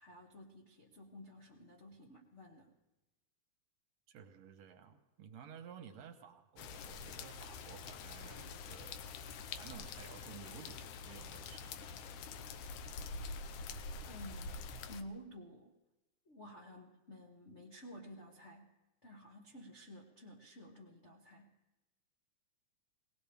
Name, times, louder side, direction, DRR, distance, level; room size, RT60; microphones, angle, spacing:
voice 1, 0.0-2.7 14.1-15.7 16.2-18.7 19.0-21.5, equal, 60° left, -1 dB, 0.7 m, -53 dB
voice 2, 4.1-9.2 9.6-11.9, right 8 dB, 70° right, 5 dB, 2.1 m, -54 dB
sound 1, 6.6-15.0, left 4 dB, 85° left, 2.2 m, -46 dB
21.0 x 18.5 x 3.5 m, 1.0 s
omnidirectional pair, 3.5 m